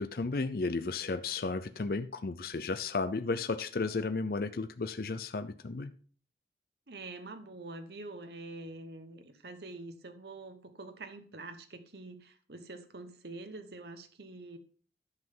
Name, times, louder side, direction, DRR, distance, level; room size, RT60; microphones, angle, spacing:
voice 1, 0.0-5.9, left 3 dB, 55° left, 0.5 m, -33 dB
voice 2, 6.9-14.6, right 2 dB, 65° right, 1.1 m, -46 dB
10.5 x 5.8 x 5.5 m
head